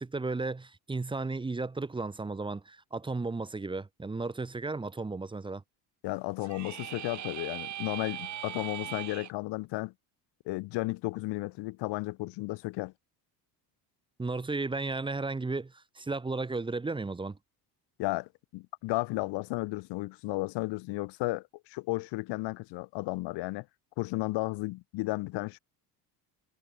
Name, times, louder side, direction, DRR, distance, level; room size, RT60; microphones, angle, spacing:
voice 1, 0.0-5.6 14.2-17.4, right 3 dB, 10° right, 2.0 m, -34 dB
voice 2, 6.0-9.9 10.5-12.9 18.0-23.7 24.0-25.6, left 21 dB, 80° left, 3.8 m, -33 dB
sound 1, 6.4-9.3, right 11 dB, 45° right, 3.1 m, -40 dB
cardioid pair, 160°, 41 cm